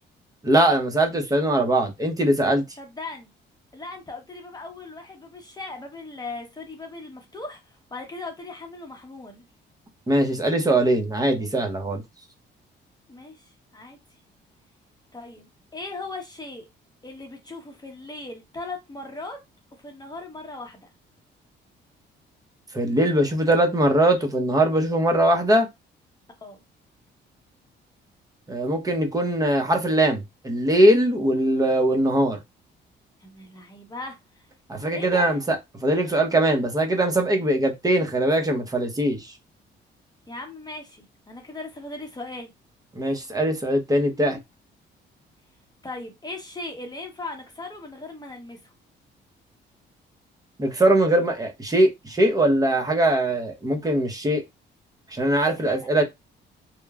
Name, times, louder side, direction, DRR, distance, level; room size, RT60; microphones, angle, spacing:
voice 1, 0.4-2.6 10.1-12.0 22.7-25.7 28.5-32.4 34.7-39.3 43.0-44.4 50.6-54.4 55.1-56.0, right 1 dB, 20° right, 0.7 m, -21 dB
voice 2, 2.8-3.3 3.7-9.4 13.1-14.0 15.1-16.7 17.0-19.4 19.8-20.9 26.4-26.6 33.2-34.2 34.9-35.4 40.3-42.5 45.8-48.7 55.6-55.9, left 2 dB, 20° left, 0.8 m, -38 dB
3.0 x 2.0 x 2.3 m
cardioid pair, 90°, 20 cm